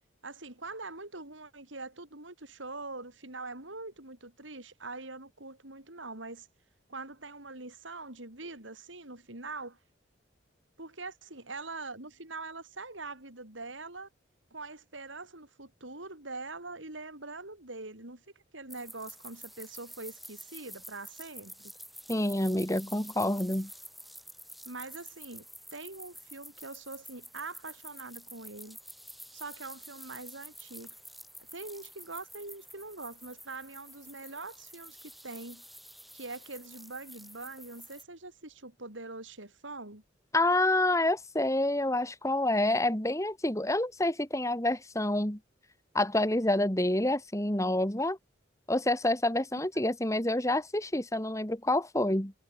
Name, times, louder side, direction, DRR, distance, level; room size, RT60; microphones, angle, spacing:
voice 1, 0.2-6.5 6.9-9.8 10.8-14.1 14.5-18.2 18.5-21.7 24.6-25.5 25.7-28.8 29.3-30.9 31.5-35.0 35.2-35.6 36.1-40.0, right 3 dB, 75° right, 5.8 m, -43 dB
sound 1, 18.7-38.0, equal, ahead, 5.7 m, -49 dB
voice 2, 22.1-23.7 40.3-45.4 45.9-48.2 48.7-52.3, left 1 dB, 15° left, 2.6 m, -28 dB
head